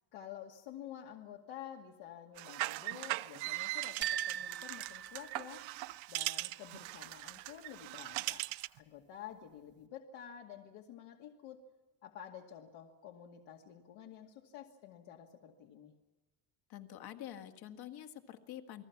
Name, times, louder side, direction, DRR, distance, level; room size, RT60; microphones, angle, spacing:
voice 1, 0.1-5.7 6.1-8.5 8.8-11.6 12.0-15.9, left 9 dB, 65° left, 0 dB, 2.3 m, -50 dB
sound 1, 2.4-8.8, right 19 dB, 70° right, 0.7 m, -40 dB
sound 2, 4.0-5.9, right 10 dB, 25° right, 0.7 m, -40 dB
voice 2, 16.7-18.8, left 11 dB, 50° left, 6 dB, 2.0 m, -47 dB
29.0 x 20.5 x 6.0 m, 1.1 s
cardioid pair, 175°, 48 cm